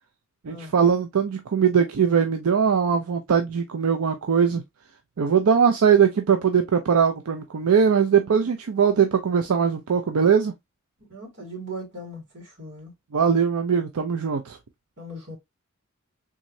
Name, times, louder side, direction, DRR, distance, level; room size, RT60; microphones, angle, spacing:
voice 1, 0.4-4.6 5.2-10.5 13.1-14.6, right 7 dB, 80° right, 0.5 m, -21 dB
voice 2, 11.1-12.9 15.0-15.4, right 1 dB, 55° right, 2.5 m, -38 dB
3.6 x 3.1 x 2.6 m
head